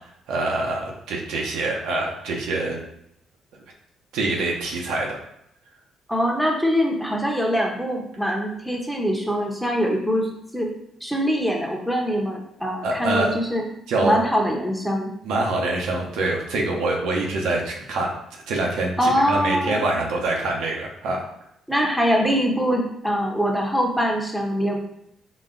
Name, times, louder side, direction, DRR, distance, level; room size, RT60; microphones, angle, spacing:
voice 1, 0.3-2.8 4.1-5.2 12.8-13.3 13.9-14.2 15.2-18.1 18.5-21.2, right 2 dB, 90° right, -1 dB, 0.8 m, -25 dB
voice 2, 6.1-10.3 10.5-10.7 11.0-13.6 14.0-15.1 19.0-19.8 21.7-24.8, equal, ahead, 0 dB, 0.8 m, -23 dB
3.9 x 2.3 x 3.8 m, 0.76 s
cardioid pair, 90°, 0 cm